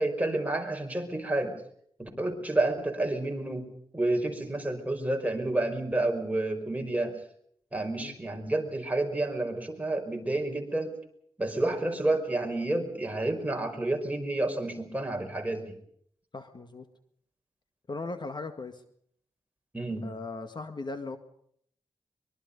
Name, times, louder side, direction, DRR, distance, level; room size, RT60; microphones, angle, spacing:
voice 1, 0.0-1.6 2.0-3.7 3.9-7.2 7.7-11.0 11.4-15.8 19.7-20.1, right 2 dB, 15° right, 3 dB, 5.1 m, -30 dB
voice 2, 16.3-16.9 17.9-18.8 20.0-21.2, left 3 dB, 50° left, 8 dB, 1.9 m, -38 dB
24.0 x 23.0 x 5.4 m, 0.66 s
wide cardioid pair, 90°, 10 cm